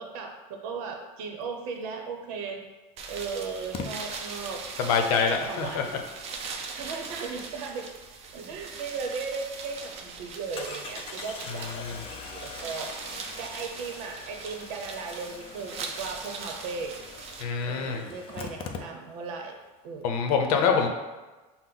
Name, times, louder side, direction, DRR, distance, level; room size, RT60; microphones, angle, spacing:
voice 1, 0.0-2.6 3.1-4.6 5.1-6.0 6.7-7.9 8.3-12.9 13.4-17.0 17.6-19.6 19.8-20.2 20.8-20.9, right 5 dB, 75° right, 3 dB, 0.8 m, -37 dB
Engine starting, 2.2-2.3 3.7-3.9 8.9-9.0 9.4-9.5 10.6-19.4 19.6-19.7 19.9-20.0, left 5 dB, 30° left, 0.4 m, -42 dB
sound 1, 3.0-17.4, right 4 dB, 35° right, 0.5 m, -40 dB
voice 2, 4.8-5.9 11.8-12.0 17.4-18.1 20.0-20.9, left 5 dB, 85° left, 4 dB, 0.7 m, -25 dB
5.9 x 2.1 x 3.8 m, 1.2 s
supercardioid pair, 140°, 18 cm